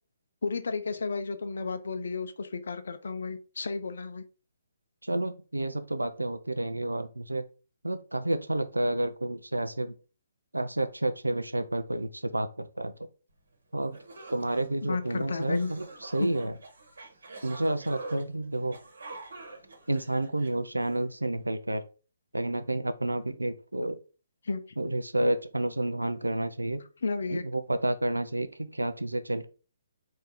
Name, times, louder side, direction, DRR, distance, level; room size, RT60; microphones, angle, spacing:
voice 1, 0.4-4.2 14.8-15.7 16.2-16.3 24.4-24.8 27.0-27.4, left 4 dB, 65° left, 8 dB, 0.5 m, -32 dB
voice 2, 5.0-7.4 7.8-9.9 10.5-13.1 13.7-14.0 14.3-16.5 17.4-18.8 19.9-21.8 22.3-24.0 24.8-26.8 27.3-29.5, right 1 dB, 85° right, 9 dB, 0.4 m, -30 dB
sound 1, 13.5-13.6 13.9-21.0, right 3 dB, 70° right, 1.2 m, -45 dB
4.3 x 2.7 x 3.5 m, 0.35 s
figure-of-eight pair, 130°, 0 cm